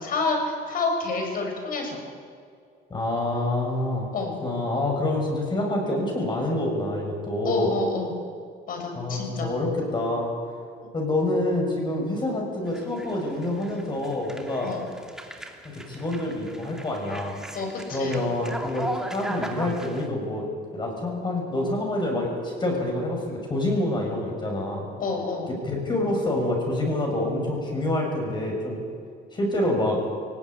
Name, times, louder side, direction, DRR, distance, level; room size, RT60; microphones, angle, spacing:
voice 1, 0.0-2.0 4.1-4.4 7.4-8.1 8.7-9.5 14.6-14.8 17.5-18.2 25.0-25.5, left 3 dB, 55° left, 3 dB, 7.0 m, -28 dB
voice 2, 2.9-4.1 4.4-7.7 8.9-10.3 10.9-14.7 15.6-17.4 17.9-24.9 25.5-28.8 29.3-30.0, left 1 dB, 25° left, 0 dB, 6.5 m, -27 dB
sound 1, 12.7-20.1, right 1 dB, 5° right, 2.8 m, -38 dB
21.0 x 18.5 x 9.9 m, 2.3 s
cardioid pair, 110°, 17 cm